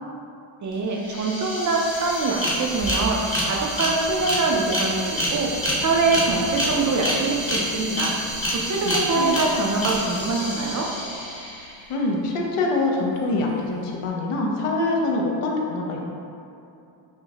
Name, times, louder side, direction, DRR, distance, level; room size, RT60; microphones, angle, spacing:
voice 1, 0.6-8.2 8.5-10.9, right 3 dB, 40° right, -1 dB, 0.4 m, -24 dB
sound 1, 0.7-0.8 1.0-11.8, equal, 25° left, 0.8 m, -28 dB
sound 2, 2.8-5.7, right 2 dB, 70° right, 1.0 m, -38 dB
sound 3, 3.6-12.4, left 6 dB, 60° left, 1.0 m, -41 dB
voice 2, 8.7-9.4 11.9-16.0, left 2 dB, 85° left, -1 dB, 0.7 m, -25 dB
5.5 x 2.1 x 2.8 m, 2.7 s
cardioid pair, 120°, 49 cm